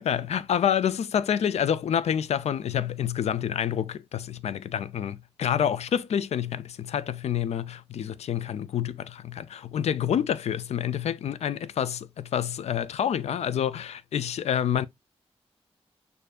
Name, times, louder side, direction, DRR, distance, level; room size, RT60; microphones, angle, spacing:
voice 1, 0.0-14.8, left 9 dB, 90° left, 0.4 m, -28 dB
6.6 x 2.6 x 2.3 m
wide cardioid pair, 175°, 11 cm